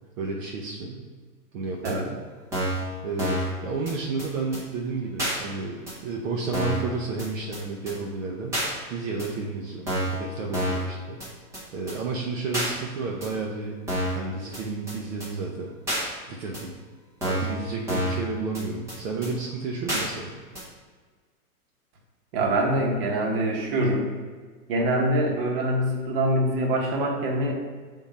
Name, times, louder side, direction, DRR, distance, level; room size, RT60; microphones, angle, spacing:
voice 1, 0.2-1.0 1.5-2.2 3.0-8.6 8.9-11.2 11.7-13.8 14.1-15.7 16.3-16.7 17.2-20.3, right 4 dB, 60° right, -1 dB, 0.8 m, -31 dB
sound 1, 1.8-1.9 2.5-2.8 3.2-3.5 3.9-4.0 4.2-4.3 4.5-4.6 5.2-5.4 5.9-6.0 6.5-6.8 7.2-7.3 7.5-7.6 7.9-8.0 8.5-8.7 9.2-9.3 9.9-10.2 10.5-10.9 11.2-11.3 11.5-11.6 11.9-12.0 12.5-12.7 13.2-13.3 13.9-14.2 14.5-14.6 14.9-15.0 15.2-15.3 15.9-16.0 16.5-16.6 17.2-17.5 17.9-18.2 18.5-18.6 18.9-19.0 19.2-19.3 19.9-20.0 20.5-20.6, equal, 5° right, 0.6 m, -28 dB
voice 2, 22.3-24.1 24.7-27.5, right 1 dB, 40° right, 0 dB, 1.1 m, -24 dB
6.0 x 3.8 x 4.2 m, 1.5 s
supercardioid pair, 170°, 45 cm